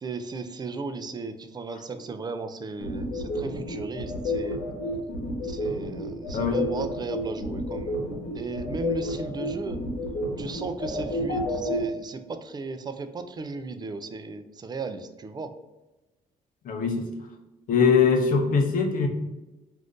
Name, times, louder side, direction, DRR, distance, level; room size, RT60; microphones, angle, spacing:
voice 1, 0.0-4.7 5.4-8.0 8.3-9.8 10.4-15.5, right 4 dB, 25° right, 9 dB, 0.4 m, -36 dB
sound 1, 2.8-11.8, left 2 dB, 85° left, 1.0 m, -30 dB
voice 2, 16.6-17.1 17.7-19.1, left 5 dB, 60° left, 4 dB, 0.6 m, -22 dB
2.5 x 2.5 x 3.5 m, 1.0 s
supercardioid pair, 70°, 16 cm